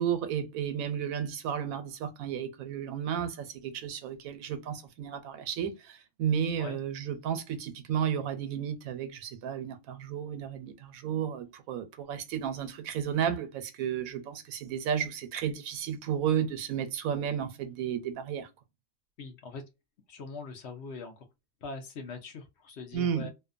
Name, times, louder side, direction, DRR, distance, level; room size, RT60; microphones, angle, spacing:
voice 1, 0.0-18.5 22.9-23.3, right 8 dB, 90° right, 1.1 m, -33 dB
voice 2, 19.2-19.6 20.1-21.2 21.6-23.3, left 4 dB, 60° left, 0.9 m, -42 dB
2.6 x 2.2 x 2.4 m
omnidirectional pair, 1.4 m